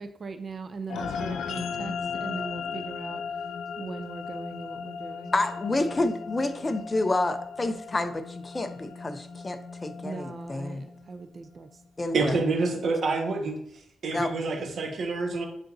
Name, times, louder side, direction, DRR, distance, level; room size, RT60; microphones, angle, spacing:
voice 1, 0.0-3.2 3.8-5.3 10.0-11.8 12.7-12.9, right 4 dB, 45° right, 9 dB, 0.5 m, -40 dB
sound 1, 0.9-11.5, left 6 dB, 85° left, 0.4 m, -37 dB
voice 2, 5.3-10.8 12.0-12.3 14.1-14.3, left 2 dB, 25° left, 8 dB, 0.6 m, -29 dB
voice 3, 12.1-13.6 14.0-15.5, right 3 dB, 65° right, 1 dB, 1.4 m, -27 dB
9.5 x 3.8 x 2.7 m, 0.67 s
cardioid pair, 85°, 0 cm